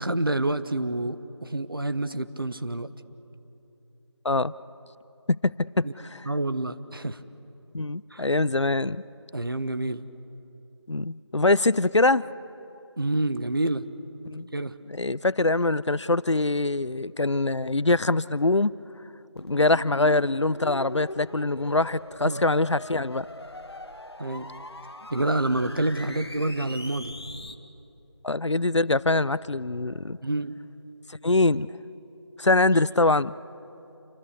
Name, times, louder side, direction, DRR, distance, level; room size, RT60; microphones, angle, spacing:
voice 1, 0.0-2.9 5.8-5.9 6.2-7.2 8.1-8.3 9.3-10.1 13.0-13.8 14.5-14.7 22.2-22.4 24.2-24.5 25.1-27.1 30.2-30.7, right 2 dB, 50° right, 11 dB, 1.1 m, -28 dB
voice 2, 5.3-6.2 7.7-9.0 10.9-12.3 14.3-14.5 14.9-18.7 19.4-23.3 28.2-30.2 31.2-31.7 32.4-33.3, left 2 dB, 75° left, 19 dB, 0.7 m, -23 dB
sound 1, 19.4-27.5, left 1 dB, 60° left, 1.7 m, -41 dB
28.5 x 24.5 x 8.3 m, 2.9 s
figure-of-eight pair, 175°, 15 cm